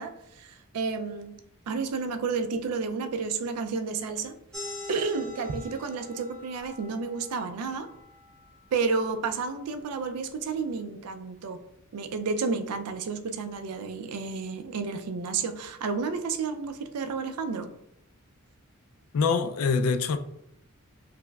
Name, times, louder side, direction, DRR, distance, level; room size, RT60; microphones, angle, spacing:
voice 1, 0.0-1.4 1.7-4.3 4.9-7.9 8.7-11.6 11.9-17.7, right 4 dB, 85° right, 0.4 m, -31 dB
sound 1, 4.5-9.7, left 2 dB, 5° left, 0.5 m, -44 dB
voice 2, 19.1-20.2, left 5 dB, 70° left, 0.3 m, -24 dB
5.6 x 2.0 x 2.2 m
head